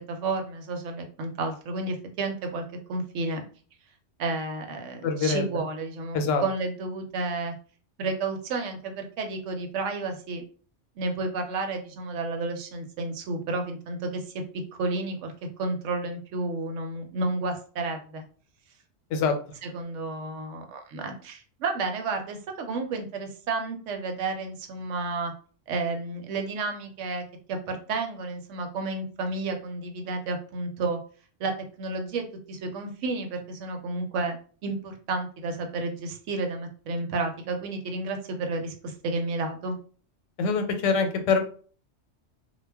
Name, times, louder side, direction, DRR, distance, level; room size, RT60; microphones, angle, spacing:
voice 1, 0.1-2.6 2.9-3.4 4.2-7.5 8.0-10.4 11.0-14.3 14.7-18.2 19.6-25.3 25.7-31.0 31.4-31.5 31.8-34.4 34.6-39.8, right 3 dB, 80° right, 4 dB, 0.9 m, -31 dB
voice 2, 5.0-5.4 6.1-6.4 19.1-19.3 40.4-41.4, left 5 dB, 90° left, 6 dB, 0.9 m, -24 dB
2.2 x 2.1 x 3.3 m, 0.41 s
omnidirectional pair, 1.2 m